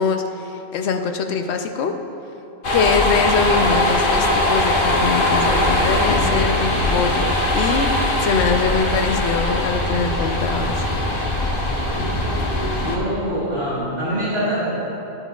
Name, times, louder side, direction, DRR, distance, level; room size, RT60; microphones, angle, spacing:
voice 1, 0.0-1.9 2.7-7.9 8.2-10.8, left 5 dB, 85° left, 6 dB, 0.9 m, -23 dB
sound 1, 2.6-13.0, left 1 dB, 55° left, 1.1 m, -20 dB
voice 2, 12.8-14.7, equal, 65° right, -14 dB, 2.5 m, -24 dB
12.0 x 9.7 x 2.3 m, 2.9 s
omnidirectional pair, 1.1 m